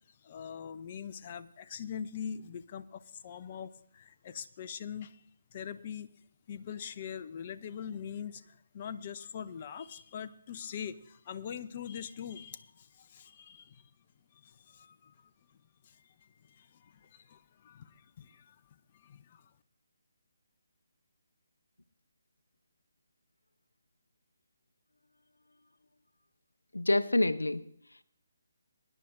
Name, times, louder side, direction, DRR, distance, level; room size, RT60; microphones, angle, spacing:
voice 1, 0.2-5.2 5.5-6.1 6.5-13.9 14.3-15.1 15.8-16.0 16.4-18.6 18.9-19.5, left 8 dB, 35° left, 0.6 m, -43 dB
voice 2, 26.7-28.0, left 2 dB, 85° left, 0.6 m, -28 dB
23.5 x 10.0 x 2.6 m
figure-of-eight pair, 145°, 0 cm